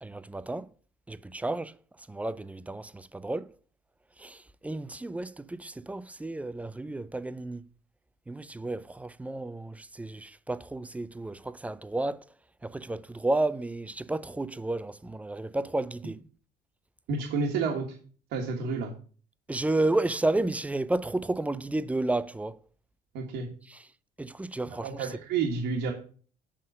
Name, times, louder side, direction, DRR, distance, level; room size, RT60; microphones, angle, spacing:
voice 1, 0.0-0.7 1.1-1.7 2.1-3.5 4.2-7.7 8.3-12.3 12.6-16.2 19.5-22.6 23.7-23.8 24.2-25.1, right 2 dB, 10° right, 0.3 m, -32 dB
voice 2, 17.1-17.8 18.3-18.9 23.1-23.5 24.8-25.9, right 4 dB, 90° right, 1.5 m, -30 dB
7.6 x 3.7 x 6.6 m
cardioid pair, 110°, 17 cm